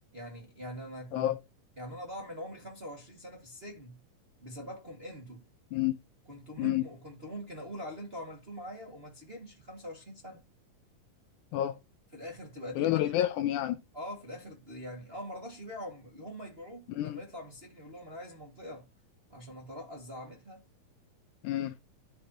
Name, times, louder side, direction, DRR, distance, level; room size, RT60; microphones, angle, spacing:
voice 1, 0.1-1.3 1.8-4.0 4.4-5.5 6.3-10.4 12.1-13.1 13.9-18.9 19.3-20.6, equal, 25° right, 1.3 m, -43 dB
voice 2, 12.8-13.8 16.9-17.2 21.4-21.8, left 13 dB, 80° left, 1.9 m, -29 dB
12.5 x 5.2 x 2.8 m
omnidirectional pair, 3.8 m